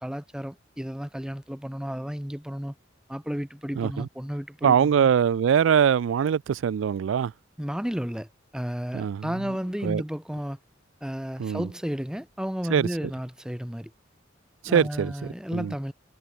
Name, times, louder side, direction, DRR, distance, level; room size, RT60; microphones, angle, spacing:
voice 1, 0.0-2.7 3.1-5.1 7.6-10.6 11.0-13.9 14.7-15.9, equal, 5° right, 0.7 m, -33 dB
voice 2, 3.8-4.1 4.6-7.3 8.9-9.3 9.8-10.0 11.4-11.7 12.7-12.9 14.6-15.1 15.5-15.7, right 8 dB, 70° right, 0.3 m, -22 dB
head